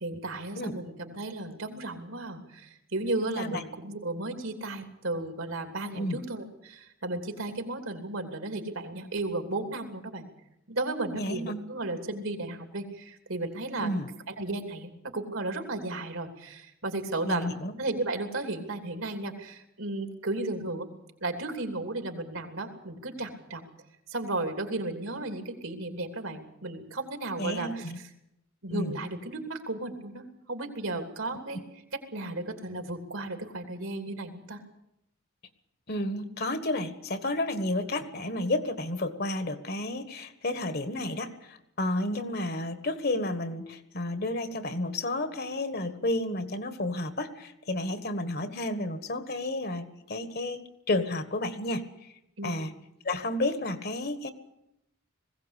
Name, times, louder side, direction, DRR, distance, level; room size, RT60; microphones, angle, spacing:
voice 1, 0.0-10.2 10.7-13.9 14.3-17.5 17.8-20.9 21.2-23.6 24.1-27.9 28.6-31.6 32.1-34.6 52.4-52.6, right 2 dB, 75° right, 5 dB, 3.1 m, -34 dB
voice 2, 11.1-11.6 13.8-14.1 17.2-17.7 27.4-28.0 28.7-29.0 35.9-51.8 52.4-52.7 53.0-54.3, left 1 dB, 50° left, 10 dB, 1.5 m, -31 dB
20.5 x 16.5 x 8.3 m, 0.83 s
head